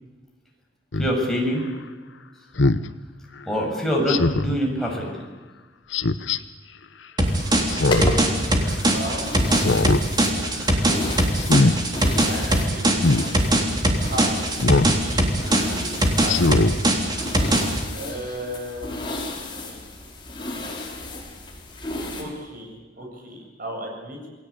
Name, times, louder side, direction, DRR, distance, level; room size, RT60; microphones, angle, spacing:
Speech synthesizer, 0.9-1.1 2.6-2.9 4.1-4.6 5.9-6.4 7.7-8.2 8.6-8.7 9.5-10.0 10.4-10.7 11.4-11.8 13.0-13.3 14.6-15.0 15.4-15.6 16.2-16.7 17.2-17.3, left 2 dB, 75° left, 0.9 m, -21 dB
voice 1, 1.0-1.6 3.5-5.1, equal, ahead, -1 dB, 6.7 m, -24 dB
sound 1, 7.2-22.2, left 1 dB, 25° left, 5.2 m, -33 dB
sound 2, 7.2-17.8, right 1 dB, 25° right, 3.6 m, -21 dB
voice 2, 8.8-9.3 9.6-10.3 12.2-14.4 14.9-16.4 17.9-19.0 22.2-24.2, right 1 dB, 50° right, 1 dB, 8.0 m, -36 dB
28.5 x 19.5 x 8.4 m, 1.3 s
head